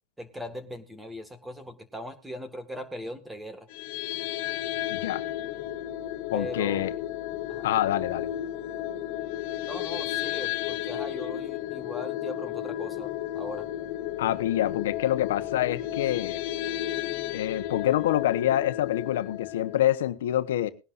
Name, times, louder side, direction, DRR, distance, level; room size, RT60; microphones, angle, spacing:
voice 1, 0.2-3.7 6.3-6.9 7.5-7.7 9.6-13.7, equal, 5° right, 1.9 m, -39 dB
sound 1, 3.7-19.8, left 13 dB, 55° left, 2.0 m, -33 dB
voice 2, 4.9-5.2 6.3-6.9 7.6-8.3 14.2-16.4 17.3-20.7, left 12 dB, 85° left, 1.1 m, -26 dB
20.5 x 11.0 x 2.6 m
supercardioid pair, 145°, 0 cm